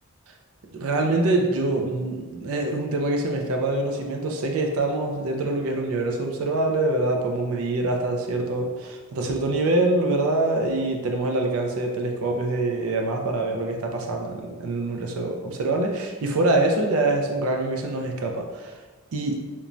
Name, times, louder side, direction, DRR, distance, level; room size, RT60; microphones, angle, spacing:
voice 1, 0.7-8.6 9.1-18.8 19.1-19.4, right 2 dB, 80° right, 2 dB, 0.4 m, -25 dB
3.0 x 2.2 x 2.5 m, 1.3 s
head